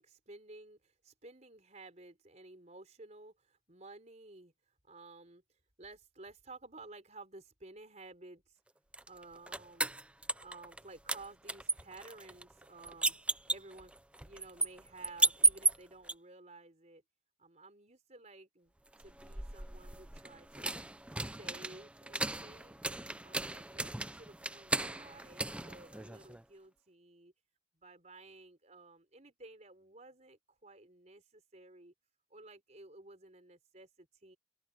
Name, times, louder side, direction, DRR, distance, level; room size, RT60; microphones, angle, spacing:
voice 1, 0.0-4.5 4.8-5.4 5.8-8.6 9.1-10.0 10.4-13.2 13.5-13.9 14.2-17.0 17.4-18.7 19.0-20.9 21.4-22.8 23.2-27.3 27.7-31.9 32.3-34.4, right 2 dB, 40° right, 4.3 m, -54 dB
sound 1, 8.9-10.8 11.1-16.1 18.9-26.4, right 3 dB, 5° right, 0.5 m, -35 dB
head